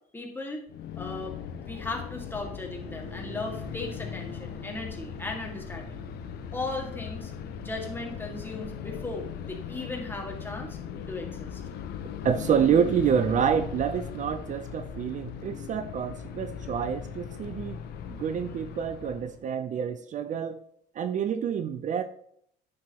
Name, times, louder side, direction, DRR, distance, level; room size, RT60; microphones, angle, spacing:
voice 1, 0.1-0.6 1.0-1.4 1.6-6.0 6.5-7.3 7.6-10.8 11.1-11.6, left 2 dB, 10° left, 1 dB, 1.9 m, -37 dB
sound 1, 0.7-19.4, left 9 dB, 70° left, 0.8 m, -39 dB
sound 2, 2.8-16.9, right 4 dB, 80° right, 1.0 m, -50 dB
voice 2, 12.2-17.8 18.1-20.6 20.9-22.0, right 8 dB, 45° right, 10 dB, 0.5 m, -27 dB
9.5 x 6.6 x 2.9 m, 0.68 s
cardioid pair, 110°, 17 cm